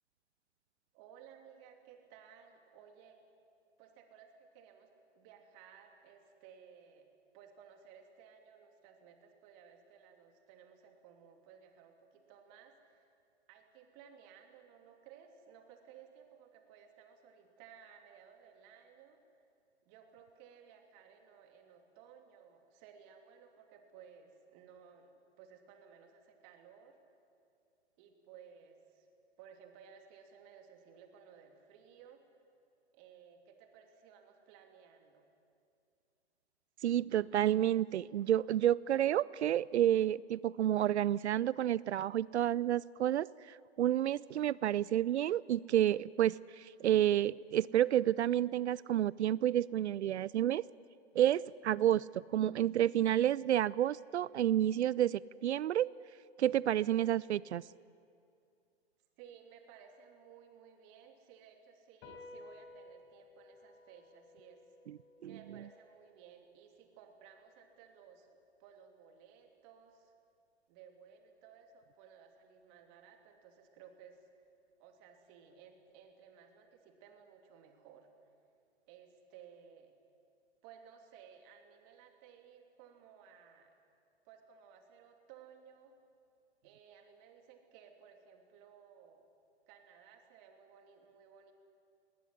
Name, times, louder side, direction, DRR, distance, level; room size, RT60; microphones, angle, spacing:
voice 1, 0.9-3.2 3.8-7.1 7.3-13.1 13.5-19.2 19.8-27.0 28.0-29.1 29.4-32.2 32.9-35.3 59.2-64.7 65.2-68.3 68.6-70.1 70.7-74.2 74.8-78.1 78.9-79.9 80.6-83.8 84.2-85.9 86.6-89.3 89.7-91.5, right 7 dB, 40° right, 4 dB, 3.0 m, -58 dB
voice 2, 36.8-50.6 51.1-55.9 56.4-57.6 65.2-65.4, right 11 dB, 80° right, 22 dB, 0.5 m, -30 dB
sound 1, 62.0-68.7, left 2 dB, 35° left, 4.2 m, -58 dB
19.5 x 19.0 x 9.8 m, 2.5 s
hypercardioid pair, 120°, 33 cm